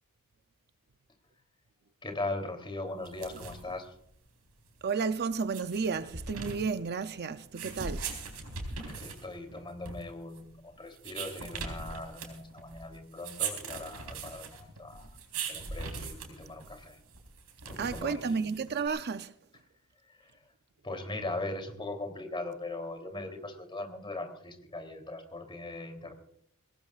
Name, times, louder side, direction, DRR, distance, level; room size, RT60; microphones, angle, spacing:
voice 1, 2.0-3.9 8.8-15.2 15.4-17.0 17.7-18.4 20.1-20.4 20.8-26.1, left 2 dB, 20° left, 3.2 m, -40 dB
sound 1, 3.0-18.9, right 5 dB, 80° right, 4.3 m, -41 dB
voice 2, 4.8-8.1 17.8-19.3, right 5 dB, 45° right, 0.6 m, -32 dB
23.5 x 18.5 x 2.5 m
head